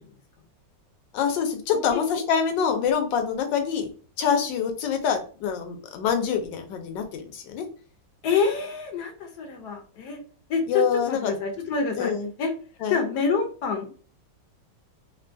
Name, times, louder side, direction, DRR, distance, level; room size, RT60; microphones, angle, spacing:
voice 1, 1.1-3.9 4.2-7.6 10.7-11.3 12.0-12.3 12.8-13.0, left 7 dB, 85° left, 6 dB, 1.3 m, -25 dB
voice 2, 8.2-10.2 10.5-12.1 12.4-12.5 12.9-13.9, left 5 dB, 70° left, 3 dB, 1.2 m, -27 dB
3.6 x 2.3 x 2.5 m, 0.39 s
omnidirectional pair, 1.9 m